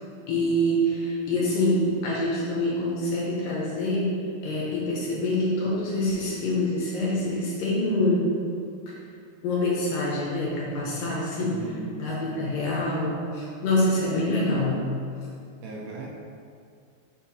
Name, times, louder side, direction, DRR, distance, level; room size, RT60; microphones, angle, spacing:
voice 1, 0.3-8.4 9.4-11.7 12.0-15.0, left 1 dB, 70° left, -5 dB, 2.3 m, -26 dB
voice 2, 11.4-12.6 15.6-16.1, right 3 dB, 80° right, -3 dB, 2.9 m, -39 dB
6.6 x 4.5 x 4.1 m, 2.3 s
omnidirectional pair, 4.6 m